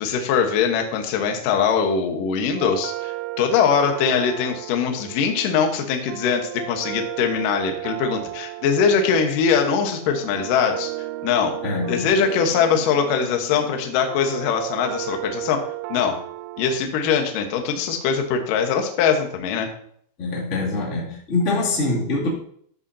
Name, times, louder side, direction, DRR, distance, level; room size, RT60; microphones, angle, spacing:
voice 1, 0.0-10.9 11.2-11.6 11.9-16.2 16.6-19.7, left 6 dB, 75° left, 4 dB, 2.0 m, -22 dB
sound 1, 2.6-16.8, right 17 dB, 85° right, 2.5 m, -34 dB
voice 2, 11.6-12.1 20.2-22.3, left 2 dB, 30° left, -5 dB, 1.4 m, -24 dB
13.0 x 8.1 x 2.8 m, 0.62 s
omnidirectional pair, 5.7 m